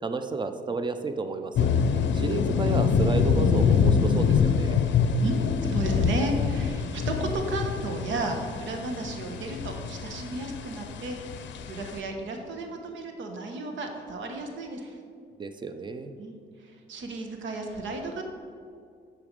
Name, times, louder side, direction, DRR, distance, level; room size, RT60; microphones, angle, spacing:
voice 1, 0.0-1.7 2.1-4.8 15.4-16.1, right 4 dB, 25° right, 9 dB, 0.6 m, -31 dB
sound 1, 1.6-12.0, left 6 dB, 65° left, 0.6 m, -25 dB
voice 2, 5.2-11.2 11.7-15.0 16.2-16.4 16.9-18.2, right 2 dB, 75° right, 4 dB, 1.1 m, -33 dB
6.9 x 5.0 x 5.1 m, 2.2 s
cardioid pair, 90°, 20 cm